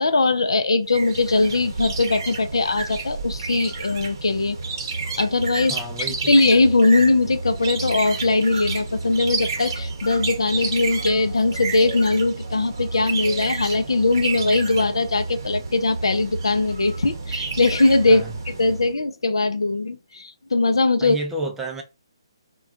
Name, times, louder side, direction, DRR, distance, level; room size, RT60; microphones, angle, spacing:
voice 1, 0.0-4.6 5.2-21.2, left 3 dB, 75° left, 0.4 m, -20 dB
sound 1, 0.9-18.9, right 4 dB, 50° right, 0.8 m, -30 dB
voice 2, 5.7-6.3 18.1-18.3 21.0-21.8, right 1 dB, 10° right, 0.4 m, -31 dB
2.2 x 2.2 x 3.7 m
figure-of-eight pair, 140°, 3 cm